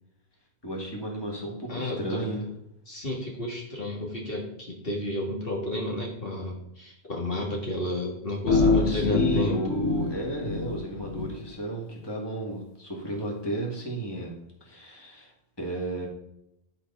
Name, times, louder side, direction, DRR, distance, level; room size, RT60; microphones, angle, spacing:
voice 1, 0.6-2.5 8.5-15.3 15.6-16.1, right 1 dB, 25° left, -2 dB, 2.3 m, -33 dB
voice 2, 1.7-2.3 2.9-9.7, left 1 dB, 60° left, -2 dB, 2.1 m, -32 dB
sound 1, 8.5-11.3, left 4 dB, 90° left, 1.2 m, -26 dB
11.5 x 4.4 x 5.6 m, 0.81 s
omnidirectional pair, 1.1 m